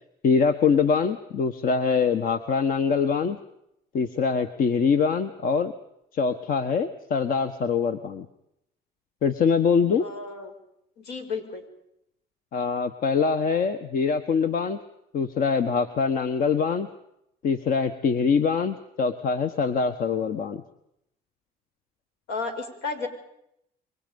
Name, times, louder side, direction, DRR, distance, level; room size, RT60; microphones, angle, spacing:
voice 1, 0.2-3.4 3.9-5.7 6.1-8.2 9.2-10.1 12.5-14.8 15.1-16.9 17.4-20.6, left 5 dB, 55° left, 9 dB, 1.5 m, -24 dB
voice 2, 10.0-10.5 11.0-11.6 22.3-23.1, left 4 dB, 80° left, 5 dB, 6.4 m, -32 dB
28.5 x 24.0 x 5.4 m, 0.78 s
cardioid pair, 110°, 17 cm